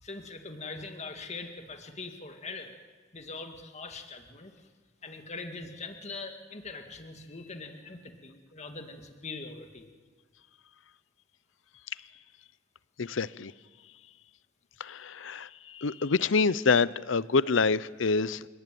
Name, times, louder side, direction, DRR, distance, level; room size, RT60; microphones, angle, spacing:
voice 1, 0.0-2.7 3.1-4.7 5.0-9.9, left 3 dB, 35° left, 5 dB, 2.2 m, -42 dB
voice 2, 13.0-13.5 14.8-18.5, left 4 dB, 80° left, 18 dB, 0.7 m, -27 dB
28.0 x 19.0 x 9.3 m, 1.5 s
head